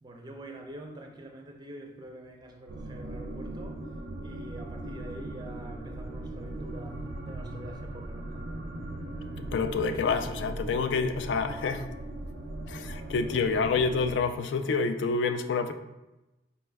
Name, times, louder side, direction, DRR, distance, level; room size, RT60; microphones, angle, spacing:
voice 1, 0.0-4.0 4.2-8.4, right 1 dB, 25° right, 3 dB, 0.4 m, -46 dB
Unhappy-Drone, 2.7-14.2, right 1 dB, 90° right, 0.4 m, -39 dB
voice 2, 9.5-11.9 12.7-15.7, left 4 dB, 75° left, 9 dB, 0.3 m, -28 dB
4.2 x 2.2 x 3.3 m, 1.0 s
head